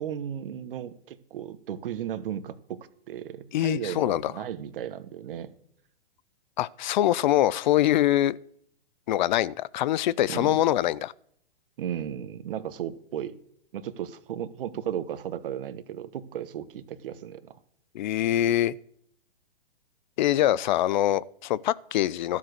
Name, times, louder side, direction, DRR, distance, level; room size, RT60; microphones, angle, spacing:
voice 1, 0.0-5.5 10.3-10.6 11.8-13.4 13.7-17.6, right 9 dB, 65° right, 1.3 m, -35 dB
voice 2, 3.5-4.3 6.6-8.4 9.1-11.1 17.9-18.8 20.2-22.4, left 13 dB, 50° left, 0.5 m, -24 dB
13.0 x 7.3 x 6.4 m
hypercardioid pair, 125°, 30 cm